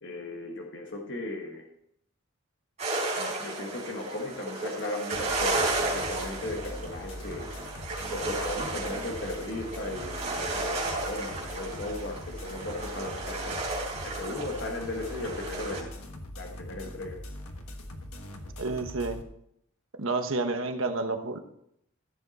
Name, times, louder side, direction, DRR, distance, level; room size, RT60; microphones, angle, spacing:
voice 1, 0.0-1.6 3.2-7.5 8.1-13.6 14.0-15.9 16.4-17.2, left 2 dB, 55° left, 0 dB, 1.5 m, -36 dB
sound 1, 2.8-15.8, right 2 dB, 30° right, 4.0 m, -33 dB
sound 2, 5.1-19.2, left 1 dB, 90° left, 1.4 m, -42 dB
voice 2, 18.6-19.2 20.0-21.4, right 3 dB, 70° right, 6 dB, 1.2 m, -30 dB
15.0 x 7.1 x 4.2 m, 0.74 s
head